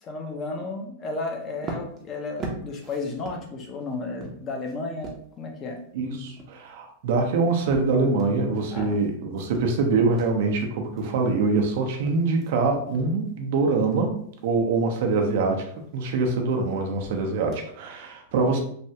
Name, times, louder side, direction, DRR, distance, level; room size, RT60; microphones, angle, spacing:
voice 1, 0.0-5.8 8.7-9.1, left 3 dB, 30° left, 3 dB, 0.6 m, -33 dB
sound 1, 1.4-12.5 12.9-13.3 13.7-18.0, right 3 dB, 25° right, 0.7 m, -42 dB
voice 2, 5.9-14.2 14.4-18.6, right 3 dB, 65° right, 3 dB, 0.6 m, -24 dB
3.3 x 2.2 x 2.7 m, 0.63 s
supercardioid pair, 140°, 0 cm